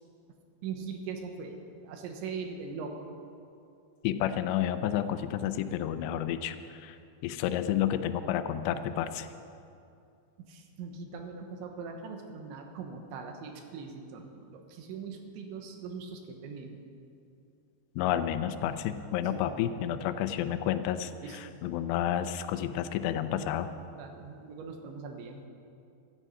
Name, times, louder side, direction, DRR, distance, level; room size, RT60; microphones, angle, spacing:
voice 1, 0.6-3.1 10.4-16.8 19.3-19.5 21.2-21.6 23.9-25.4, right 5 dB, 80° right, 4 dB, 3.4 m, -41 dB
voice 2, 4.0-7.0 7.2-9.3 18.0-23.7, left 10 dB, 80° left, 10 dB, 2.6 m, -30 dB
15.5 x 13.0 x 5.5 m, 2.6 s
omnidirectional pair, 5.4 m